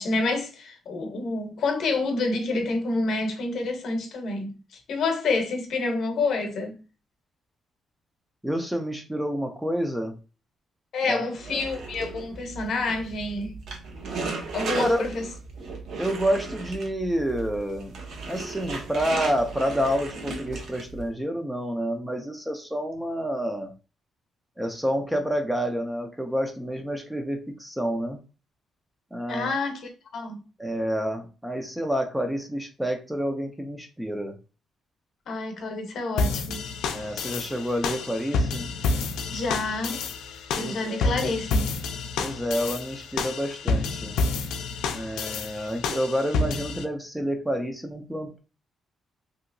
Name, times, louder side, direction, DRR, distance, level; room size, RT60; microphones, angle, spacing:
voice 1, 0.0-6.8 10.9-13.5 14.5-15.3 29.3-29.8 30.1-30.4 35.3-36.6 39.3-40.0 40.5-41.7, left 3 dB, 55° left, 0.7 m, -28 dB
voice 2, 8.4-10.1 11.1-11.6 14.8-15.0 16.0-17.9 18.3-23.7 24.6-28.2 29.1-29.5 30.6-34.4 36.9-38.7 40.6-41.1 42.2-44.1 44.9-48.4, equal, 5° right, 0.3 m, -29 dB
sound 1, 11.4-21.1, right 3 dB, 60° right, 0.6 m, -36 dB
sound 2, 36.2-46.8, left 3 dB, 90° left, 0.4 m, -29 dB
2.9 x 2.7 x 2.5 m
cardioid pair, 160°, 0 cm